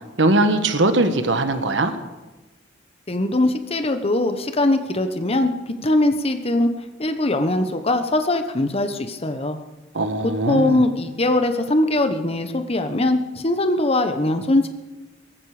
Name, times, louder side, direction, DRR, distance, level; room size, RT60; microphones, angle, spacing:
voice 1, 0.2-1.9 9.9-10.8, right 2 dB, 80° right, 8 dB, 1.4 m, -20 dB
voice 2, 3.1-6.7 7.0-9.6 10.2-14.7, left 2 dB, 35° left, 8 dB, 1.1 m, -21 dB
18.0 x 15.0 x 5.0 m, 1.1 s
head